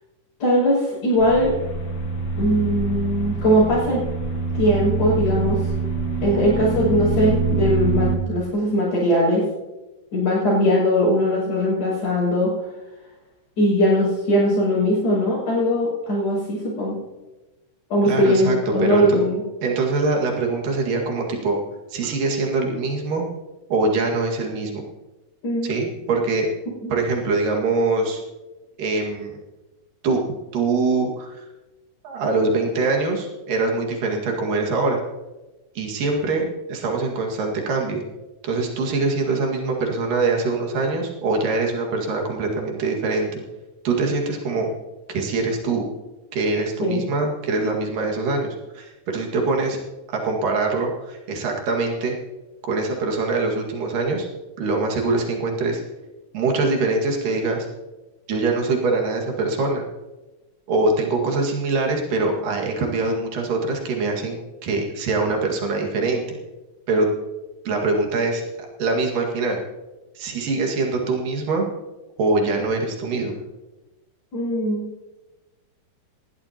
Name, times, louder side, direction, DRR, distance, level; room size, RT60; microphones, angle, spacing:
voice 1, 0.4-1.5 2.3-4.0 4.5-5.7 6.2-9.4 10.1-12.5 13.6-17.0 17.9-19.4 25.4-25.7 26.8-26.9 46.8-47.0 74.3-74.9, equal, 75° left, -10 dB, 7.9 m, -20 dB
sound 1, 1.2-8.2, right 4 dB, 60° left, 1.1 m, -25 dB
voice 2, 18.0-19.2 19.6-21.6 21.9-23.3 23.7-24.8 25.6-26.5 26.9-28.2 28.8-29.4 30.0-30.2 30.5-31.5 32.0-35.0 35.8-38.0 38.4-43.4 43.9-44.7 45.1-45.9 46.3-49.8 50.1-52.2 52.6-54.3 54.6-55.8 56.3-57.7 58.3-59.8 60.7-66.4 66.9-67.1 67.7-68.4 68.8-69.6 70.2-71.7 72.2-73.3, right 3 dB, 85° right, 0 dB, 3.6 m, -23 dB
19.5 x 14.5 x 2.9 m, 1.1 s
omnidirectional pair, 3.7 m